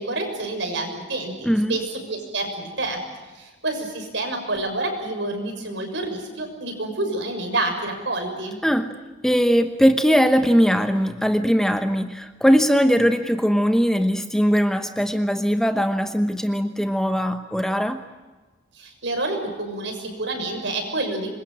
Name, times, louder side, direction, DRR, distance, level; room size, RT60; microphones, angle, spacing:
voice 1, 0.0-3.0 3.3-8.6 18.7-21.3, right 2 dB, 70° right, 4 dB, 6.5 m, -28 dB
voice 2, 1.4-1.8 8.6-8.9 9.2-18.0, equal, 5° left, 7 dB, 1.0 m, -20 dB
26.5 x 22.5 x 9.0 m, 1.3 s
head